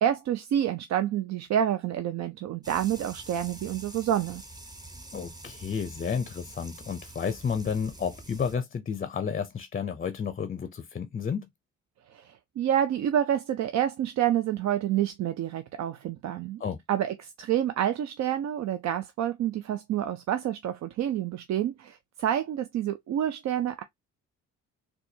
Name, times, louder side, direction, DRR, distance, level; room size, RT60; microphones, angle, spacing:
voice 1, 0.0-4.4 12.1-16.6 16.9-23.8, right 10 dB, 65° right, 0.5 m, -28 dB
sound 1, 2.6-8.5, right 2 dB, 15° right, 0.8 m, -46 dB
voice 2, 5.1-11.5 16.6-16.8, left 6 dB, 30° left, 0.5 m, -31 dB
4.1 x 2.3 x 2.7 m
cardioid pair, 90°, 30 cm